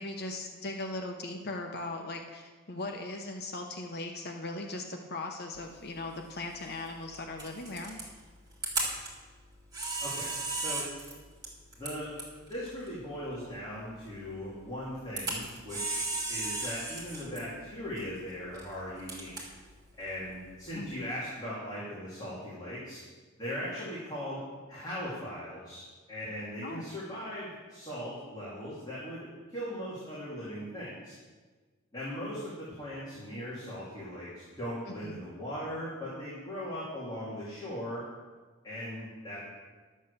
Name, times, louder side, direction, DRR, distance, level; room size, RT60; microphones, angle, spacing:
voice 1, 0.0-8.0 20.8-20.9 26.6-26.9 34.9-35.2, left 2 dB, 50° left, 3 dB, 0.9 m, -39 dB
Camera, 5.6-21.0, right 2 dB, 20° right, 3.1 m, -39 dB
voice 2, 10.0-10.3 10.6-10.8 11.8-12.1 12.5-19.3 20.0-23.0 23.4-24.4 24.7-25.8 26.1-31.1 31.9-38.0 38.6-39.4, equal, 20° left, -9 dB, 2.8 m, -39 dB
11.5 x 7.6 x 6.7 m, 1.4 s
head